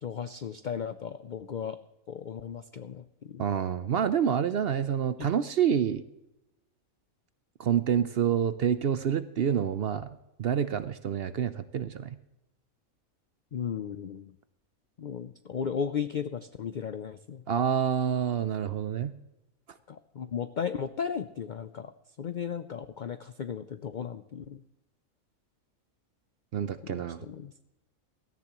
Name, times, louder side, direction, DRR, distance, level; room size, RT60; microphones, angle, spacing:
voice 1, 0.0-1.8 2.1-3.4 13.5-14.3 15.0-17.4 19.9-21.9 22.2-24.6 26.8-27.5, left 7 dB, 70° left, 12 dB, 0.4 m, -35 dB
voice 2, 3.4-6.0 7.6-10.1 10.4-12.2 17.5-19.1 26.5-27.2, right 8 dB, 60° right, 13 dB, 0.7 m, -27 dB
16.5 x 13.5 x 3.0 m, 0.92 s
omnidirectional pair, 1.5 m